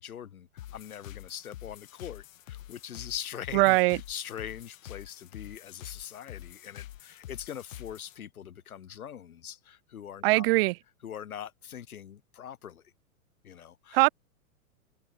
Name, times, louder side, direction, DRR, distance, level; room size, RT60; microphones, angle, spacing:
voice 1, 0.0-10.5 11.0-12.8 13.4-14.0, left 9 dB, 80° left, 2.1 m, -42 dB
sound 1, 0.6-8.2, left 13 dB, 65° left, 3.8 m, -46 dB
voice 2, 3.5-4.0 10.2-10.7 13.9-14.1, right 23 dB, 40° right, 0.7 m, -21 dB
hypercardioid pair, 120°, 42 cm